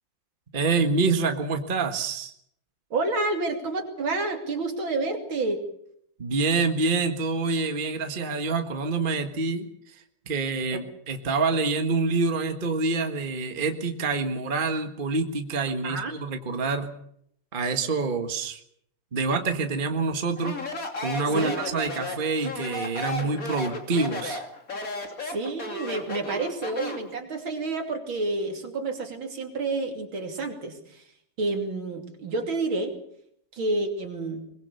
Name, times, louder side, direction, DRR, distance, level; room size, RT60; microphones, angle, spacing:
voice 1, 0.5-2.3 6.2-9.7 10.3-16.9 17.5-18.6 19.1-20.6 21.0-24.4, right 4 dB, 25° right, 6 dB, 1.6 m, -26 dB
voice 2, 2.9-5.6 10.7-10.8 15.8-16.1 21.3-21.6 25.2-31.1 31.4-32.9 33.5-34.5, right 3 dB, 65° right, 4 dB, 3.6 m, -29 dB
Speech, 20.4-27.1, left 2 dB, 40° left, 3.2 m, -34 dB
22.5 x 21.5 x 7.0 m, 0.70 s
omnidirectional pair, 2.4 m